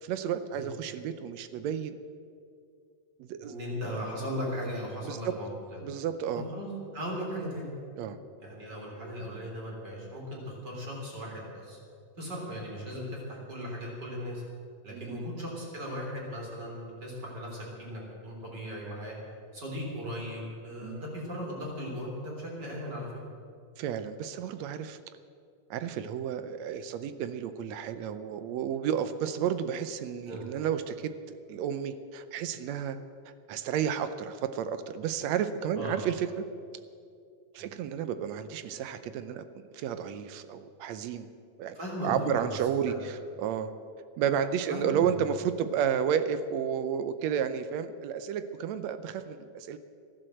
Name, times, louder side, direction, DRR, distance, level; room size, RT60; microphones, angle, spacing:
voice 1, 0.0-2.0 3.2-3.6 5.0-5.3 5.8-6.5 8.0-8.2 14.9-15.2 20.8-21.0 23.8-25.0 25.7-33.0 33.5-36.5 37.5-41.3 41.6-41.8 42.0-43.7 44.2-49.8, right 8 dB, 75° right, 11 dB, 1.8 m, -32 dB
voice 2, 3.4-5.9 6.3-7.7 8.4-11.8 12.2-14.4 14.8-19.1 19.5-23.1 30.3-30.5 35.7-36.0 37.6-37.7 41.7-42.6 42.9-43.1 44.7-44.9, equal, 35° right, -2 dB, 4.1 m, -37 dB
15.0 x 11.0 x 7.8 m, 2.3 s
omnidirectional pair, 3.4 m